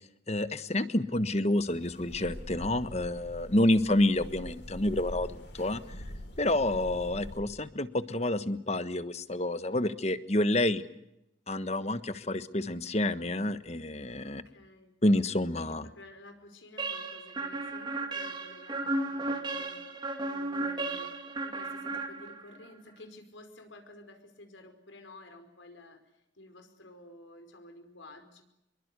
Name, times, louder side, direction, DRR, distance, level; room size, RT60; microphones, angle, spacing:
voice 1, 0.3-5.8 6.4-10.8 11.5-14.4 15.0-15.9, left 1 dB, 35° left, 12 dB, 1.3 m, -28 dB
sound 1, 1.6-7.4, equal, 70° left, 7.8 m, -44 dB
voice 2, 5.9-6.2 14.4-14.9 15.6-19.8 20.2-21.1 21.4-26.0 26.4-28.4, left 2 dB, 85° left, 6 dB, 5.2 m, -52 dB
sound 2, 16.8-22.6, right 2 dB, 25° right, 2.3 m, -34 dB
26.0 x 23.0 x 8.3 m, 0.84 s
head